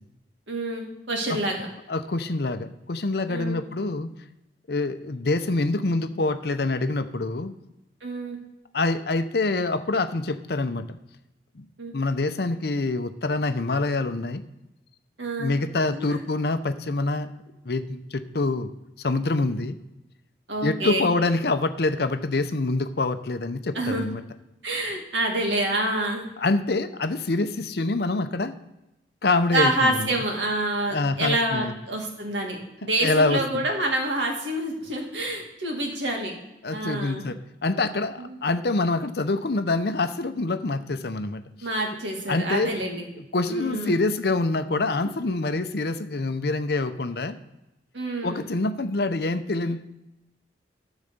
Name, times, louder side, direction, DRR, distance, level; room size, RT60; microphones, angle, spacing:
voice 1, 0.5-1.7 3.3-3.6 8.0-8.4 11.8-11.9 15.2-15.5 16.0-16.2 20.5-21.1 23.7-24.0 24.6-26.3 29.5-36.3 36.7-37.2 38.2-38.4 41.6-43.1 43.5-44.0 47.9-48.4, right 1 dB, 80° right, 1 dB, 2.1 m, -27 dB
voice 2, 1.9-4.1 4.7-7.5 8.7-11.0 11.6-11.7 11.9-14.4 15.4-17.3 17.6-18.7 19.0-19.8 20.6-24.2 26.4-28.5 29.2-30.1 30.9-31.7 33.0-33.6 36.6-41.4 42.3-42.7 43.2-47.4 48.2-49.8, left 2 dB, 60° left, 10 dB, 0.6 m, -26 dB
12.0 x 4.0 x 6.7 m, 0.94 s
head